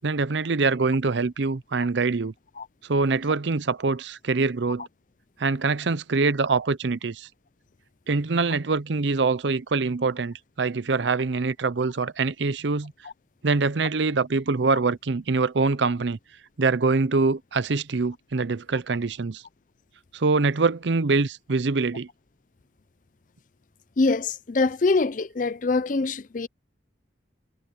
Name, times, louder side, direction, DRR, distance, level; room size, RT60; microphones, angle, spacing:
voice 1, 0.0-2.3 2.9-4.9 5.4-7.3 8.1-12.9 13.4-16.2 16.6-19.4 20.1-22.1, right 4 dB, 70° right, 0.6 m, -24 dB
voice 2, 24.0-26.5, left 3 dB, 45° left, 0.5 m, -24 dB
head